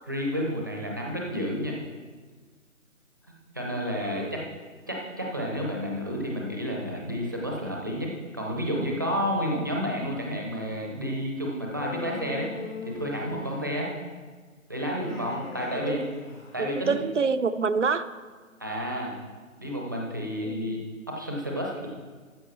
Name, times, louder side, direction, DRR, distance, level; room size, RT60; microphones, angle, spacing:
voice 1, 0.1-1.8 3.5-4.5 4.9-14.0 14.7-16.0 16.5-17.0 18.6-19.2 19.6-20.8 21.1-21.9, equal, 15° right, -1 dB, 0.7 m, -30 dB
voice 2, 3.9-4.4 15.9-16.1 16.6-18.1 20.4-20.7, right 5 dB, 60° right, 12 dB, 0.7 m, -27 dB
Human voice, 11.7-14.0 14.8-16.7, left 3 dB, 90° left, 3.2 m, -40 dB
13.5 x 7.7 x 4.3 m, 1.5 s
figure-of-eight pair, 155°, 42 cm